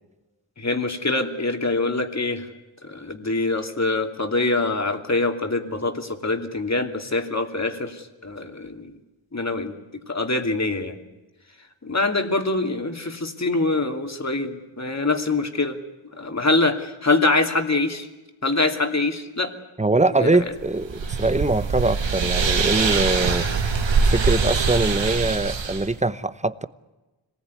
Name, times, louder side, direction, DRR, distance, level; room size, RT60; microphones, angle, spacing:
voice 1, 0.6-2.5 2.8-8.9 9.3-9.8 10.1-11.0 11.8-15.8 16.2-18.1 18.4-19.5 20.2-20.4, left 2 dB, 35° left, 2.8 m, -24 dB
voice 2, 19.8-20.9 21.2-23.5 24.1-26.7, right 2 dB, 15° right, 0.9 m, -22 dB
sound 1, 20.6-25.9, right 5 dB, 75° right, 1.7 m, -23 dB
25.5 x 19.5 x 9.7 m
wide cardioid pair, 70°, 46 cm